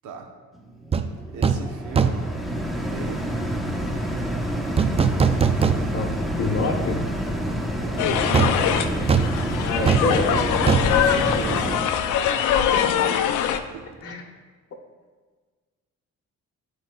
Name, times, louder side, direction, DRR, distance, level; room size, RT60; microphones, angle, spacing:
sound 1, 0.5-11.8, equal, ahead, 0.9 m, -28 dB
sound 2, 0.9-1.1 1.4-1.7 2.0-2.4 4.8-6.2 6.6-6.7 8.3-12.0 12.3-12.4, right 6 dB, 20° right, 0.4 m, -22 dB
voice 1, 1.3-2.3 2.9-3.7 7.7-8.1 10.9-11.9 13.7-14.1, right 6 dB, 85° right, 3 dB, 1.0 m, -38 dB
voice 2, 6.4-7.0 9.6-10.4 12.2-12.9 14.0-14.2, left 3 dB, 50° left, 1 dB, 1.1 m, -26 dB
sound 3, 8.0-13.6, left 9 dB, 80° left, 0.5 m, -23 dB
13.0 x 4.6 x 2.3 m, 1.4 s
cardioid pair, 90°, 30 cm